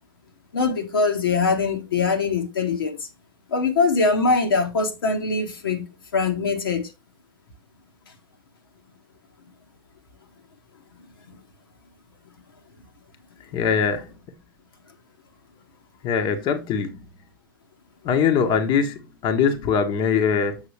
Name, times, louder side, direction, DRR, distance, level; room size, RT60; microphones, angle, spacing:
voice 1, 0.5-3.1 3.5-5.9 6.1-6.9 11.3-11.4, left 4 dB, 75° left, 1.5 m, -22 dB
voice 2, 13.5-14.1 16.0-17.0 18.0-20.6, left 6 dB, 40° left, 1.1 m, -22 dB
7.2 x 6.0 x 3.2 m
hypercardioid pair, 95°, 12 cm